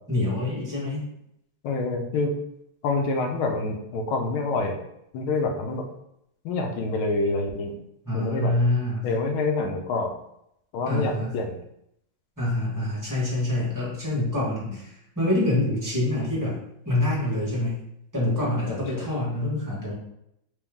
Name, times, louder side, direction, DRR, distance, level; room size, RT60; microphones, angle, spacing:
voice 1, 0.1-1.0 8.0-9.1 10.9-11.4 12.4-16.6 16.8-17.7 18.1-19.9, left 1 dB, 10° right, -7 dB, 1.1 m, -26 dB
voice 2, 1.6-2.4 2.8-4.8 5.1-5.9 6.4-7.7 8.1-8.5 9.0-10.1 10.7-11.6 18.7-19.1, left 3 dB, 85° left, 3 dB, 1.5 m, -27 dB
3.4 x 3.1 x 3.5 m, 0.77 s
omnidirectional pair, 2.3 m